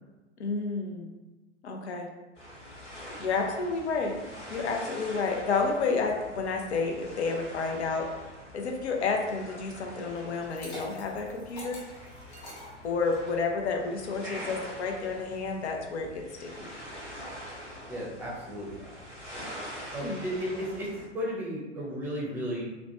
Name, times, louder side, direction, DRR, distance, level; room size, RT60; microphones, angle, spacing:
voice 1, 0.4-1.1 1.6-2.1 3.2-4.2 4.5-8.1 8.5-11.8 12.8-16.7 20.0-20.2, left 4 dB, 65° left, 2 dB, 0.6 m, -30 dB
sound 1, 2.4-21.1, equal, 85° left, 1.1 m, -45 dB
Liquid, 10.3-13.4, left 1 dB, 40° left, 1.0 m, -45 dB
voice 2, 14.2-14.5 17.9-18.9 19.4-19.5 19.9-22.6, equal, 5° right, -5 dB, 0.6 m, -34 dB
2.9 x 2.1 x 2.9 m, 1.1 s
figure-of-eight pair, 100°, 36 cm